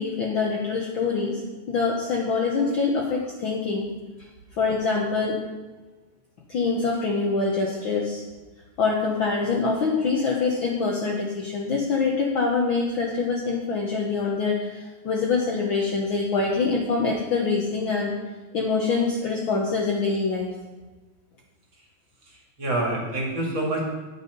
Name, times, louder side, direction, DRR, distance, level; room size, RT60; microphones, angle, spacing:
voice 1, 0.0-1.4 1.7-3.9 4.6-5.4 6.5-8.2 8.8-18.1 18.5-20.5, left 4 dB, 60° left, -1 dB, 1.4 m, -25 dB
voice 2, 22.3-23.8, right 1 dB, 45° right, -2 dB, 2.8 m, -27 dB
10.5 x 8.6 x 5.3 m, 1.2 s
omnidirectional pair, 3.4 m